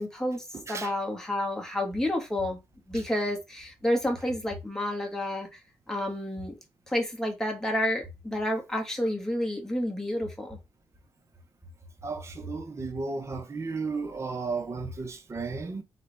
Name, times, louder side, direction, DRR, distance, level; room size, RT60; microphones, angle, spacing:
voice 1, 0.0-2.6 2.9-5.6 5.9-6.6 6.9-10.6, left 1 dB, 5° left, 1.6 m, -30 dB
voice 2, 12.0-15.8, right 4 dB, 30° right, 0.8 m, -34 dB
4.1 x 3.6 x 3.5 m
cardioid pair, 110°, 10 cm